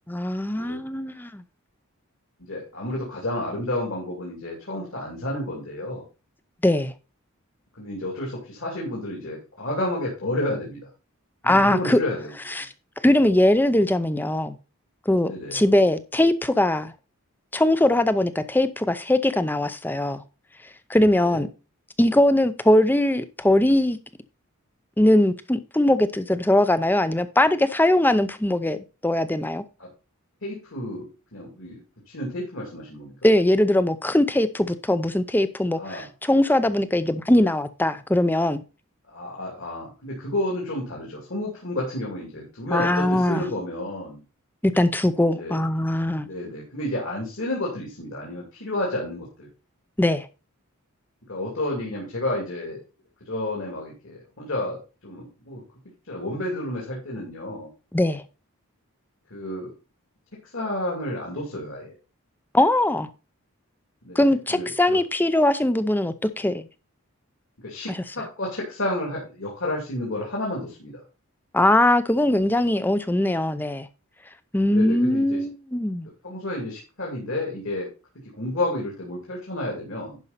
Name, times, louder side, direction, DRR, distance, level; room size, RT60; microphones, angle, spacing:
voice 1, 0.1-1.4 6.6-6.9 11.4-12.0 12.5-12.7 13.0-14.6 15.1-16.9 17.5-20.2 20.9-21.5 22.0-24.0 25.0-28.8 29.0-29.6 33.2-38.6 42.7-43.5 44.6-46.3 50.0-50.3 57.9-58.2 62.5-63.1 64.2-66.7 67.9-68.0 71.5-73.9 74.5-76.1, left 1 dB, 10° left, 0.5 m, -21 dB
voice 2, 2.5-6.0 7.7-10.8 11.4-12.7 15.2-15.6 21.3-21.4 29.8-29.9 30.4-33.1 35.7-36.1 39.1-44.2 45.3-45.6 46.2-49.5 51.3-52.8 53.3-54.8 55.0-55.6 56.1-57.7 59.3-59.7 60.5-61.9 64.0-65.0 67.6-71.0 74.7-75.4 76.2-77.9 78.3-80.2, left 1 dB, 60° left, 2.6 m, -31 dB
11.0 x 5.4 x 4.1 m
head